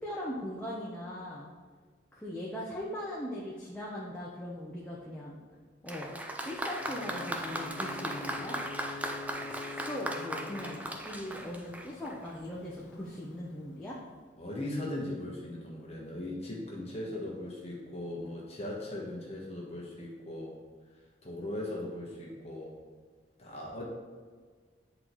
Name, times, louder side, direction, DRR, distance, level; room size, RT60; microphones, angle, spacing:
voice 1, 0.0-1.5 2.1-5.4 5.8-6.1 6.4-8.6 9.5-14.0, left 1 dB, 5° left, -6 dB, 0.8 m, -40 dB
Applause, 5.9-12.3, right 1 dB, 10° right, 0.4 m, -38 dB
Ocean / Boat Water vehicle / Alarm, 6.8-14.4, left 4 dB, 70° left, 0.4 m, -47 dB
voice 2, 14.4-20.5 21.2-22.7 23.4-23.8, left 1 dB, 35° left, -3 dB, 1.2 m, -38 dB
10.0 x 4.0 x 3.1 m, 1.5 s
head